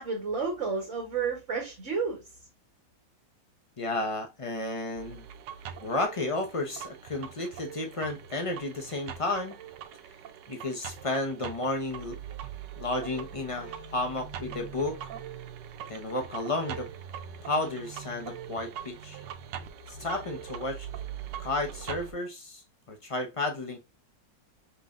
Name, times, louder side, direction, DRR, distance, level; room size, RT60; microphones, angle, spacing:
voice 1, 0.0-2.3, right 5 dB, 45° right, 1.7 m, -31 dB
voice 2, 3.8-5.3 5.8-9.6 10.5-12.2 12.8-15.0 15.9-16.9 17.4-19.2 19.9-20.9 21.4-22.6 22.9-23.8, left 2 dB, 55° left, 0.3 m, -32 dB
sound 1, 5.0-22.1, right 9 dB, 80° right, 1.2 m, -42 dB
5.3 x 3.1 x 2.5 m
omnidirectional pair, 1.9 m